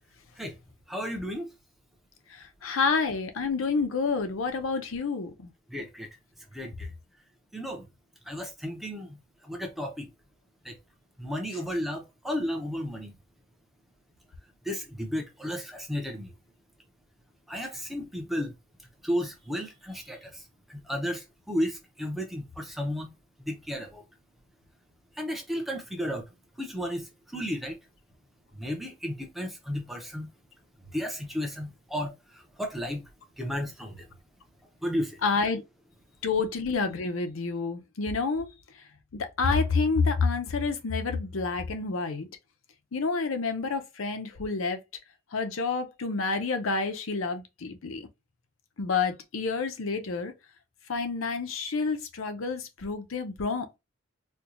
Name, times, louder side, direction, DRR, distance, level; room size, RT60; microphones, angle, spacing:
voice 1, 0.9-1.5 5.7-6.1 6.5-6.9 7.5-7.9 8.3-10.1 10.6-10.8 11.2-13.1 14.6-16.3 17.5-18.5 19.0-20.4 20.7-23.1 23.4-24.0 25.2-26.3 26.6-27.8 28.5-30.3 30.9-33.1 33.4-34.1 34.8-35.2, equal, ahead, 0.7 m, -33 dB
voice 2, 2.6-5.5 35.2-35.6 36.2-38.5 39.1-42.3 42.9-44.8 45.3-48.0 48.8-50.3 50.9-53.8, left 4 dB, 75° left, 0.7 m, -28 dB
4.4 x 2.3 x 2.5 m
head